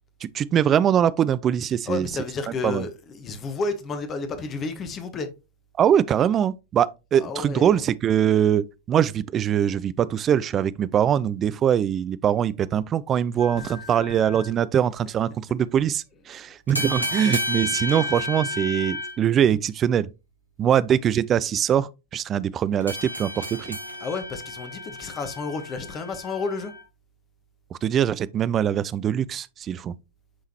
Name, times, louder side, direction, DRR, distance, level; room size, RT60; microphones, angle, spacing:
voice 1, 0.2-2.1 2.6-2.9 5.8-20.1 20.6-23.8 27.7-30.0, right 9 dB, 25° right, 0.3 m, -22 dB
voice 2, 1.8-5.3 7.2-7.8 13.6-13.7 16.5-16.6 24.0-26.7, left 4 dB, 25° left, 1.0 m, -31 dB
sound 1, 13.4-14.5 16.7-19.2 22.8-26.8, left 1 dB, 90° left, 1.0 m, -32 dB
8.8 x 3.7 x 2.9 m
figure-of-eight pair, 90°, 0 cm